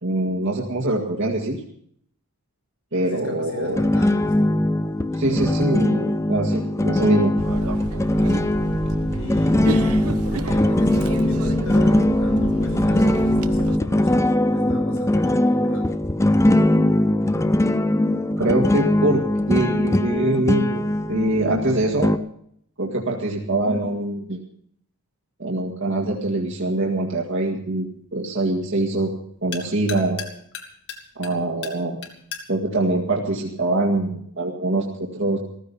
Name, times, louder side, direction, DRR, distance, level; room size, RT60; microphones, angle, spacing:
voice 1, 0.0-1.6 2.9-3.8 5.1-7.3 18.4-22.1 22.8-24.4 25.4-29.1 29.4-30.3 31.2-32.1 32.5-35.4, right 2 dB, 60° right, -1 dB, 2.0 m, -24 dB
voice 2, 3.0-4.6 9.1-16.0, left 1 dB, 75° left, 0 dB, 6.4 m, -36 dB
sound 1, 3.8-22.2, left 1 dB, 15° left, 0.5 m, -21 dB
sound 2, 7.4-13.8, right 3 dB, 85° right, 0.9 m, -30 dB
sound 3, 26.4-34.1, left 7 dB, 55° left, 2.4 m, -41 dB
15.0 x 14.5 x 5.5 m, 0.67 s
head